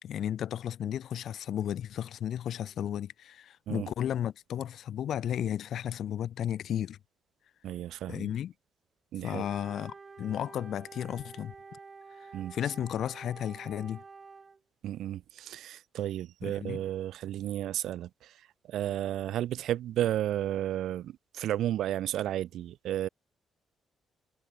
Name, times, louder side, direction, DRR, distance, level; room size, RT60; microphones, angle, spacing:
voice 1, 0.0-7.0 8.1-8.5 9.2-11.5 12.5-14.0 16.4-16.8, left 10 dB, 70° left, 1.6 m, -34 dB
voice 2, 7.6-8.3 9.1-9.5 12.3-12.6 14.8-18.3 18.7-23.1, right 12 dB, 80° right, 0.8 m, -33 dB
Wind instrument woodwind instrument, 9.4-14.6, right 4 dB, 35° right, 4.6 m, -49 dB
cardioid pair, 90°, 0 cm